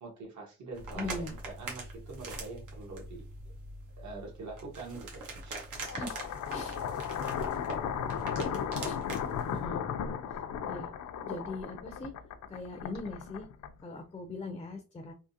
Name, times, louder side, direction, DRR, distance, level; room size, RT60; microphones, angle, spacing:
voice 1, 0.0-3.2 4.0-5.6, right 3 dB, 65° right, 0 dB, 1.4 m, -44 dB
sound 1, 0.7-9.7, right 2 dB, 90° right, 1.3 m, -43 dB
voice 2, 0.9-1.4 6.0-6.1 6.5-6.8 8.8-9.0 9.5-9.8 10.7-10.9 11.2-12.1 12.5-13.5 13.8-15.1, left 2 dB, 15° left, 5 dB, 0.4 m, -40 dB
sound 2, 5.8-14.0, left 7 dB, 70° left, 0.5 m, -35 dB
3.7 x 2.8 x 2.8 m, 0.33 s
wide cardioid pair, 140°, 30 cm